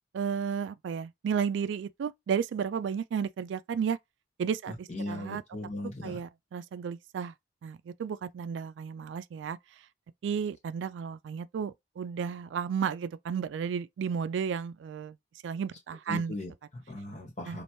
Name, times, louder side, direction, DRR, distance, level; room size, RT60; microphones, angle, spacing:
voice 1, 0.1-4.0 4.4-5.4 6.0-7.3 7.6-9.6 10.2-15.2 15.4-16.3 17.5-17.6, right 7 dB, 80° right, 0.3 m, -33 dB
voice 2, 4.7-6.2 16.1-17.6, left 1 dB, 40° left, 1.7 m, -38 dB
4.3 x 2.6 x 3.0 m
head